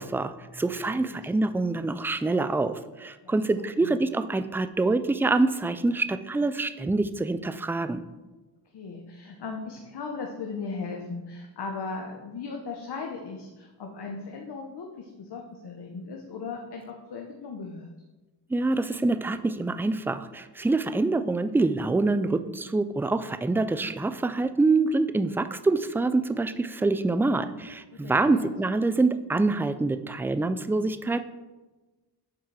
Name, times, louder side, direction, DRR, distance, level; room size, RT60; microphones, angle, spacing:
voice 1, 0.0-8.0 18.5-31.2, right 3 dB, 5° right, 11 dB, 0.3 m, -26 dB
voice 2, 0.9-1.2 3.2-4.0 8.7-17.9 27.9-28.5, left 4 dB, 65° left, 1 dB, 1.0 m, -38 dB
7.6 x 4.6 x 4.8 m, 1.2 s
cardioid pair, 70°, 43 cm